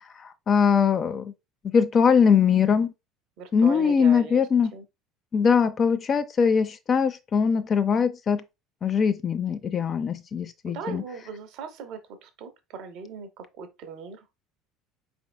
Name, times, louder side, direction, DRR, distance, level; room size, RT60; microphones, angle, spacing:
voice 1, 0.5-1.3 1.7-2.9 3.5-4.7 5.3-8.4 8.8-11.0, left 6 dB, 35° left, 0.4 m, -21 dB
voice 2, 3.4-4.4 4.7-4.8 10.7-14.2, right 6 dB, 55° right, 0.8 m, -39 dB
4.7 x 3.5 x 2.2 m
figure-of-eight pair, 65°, 0 cm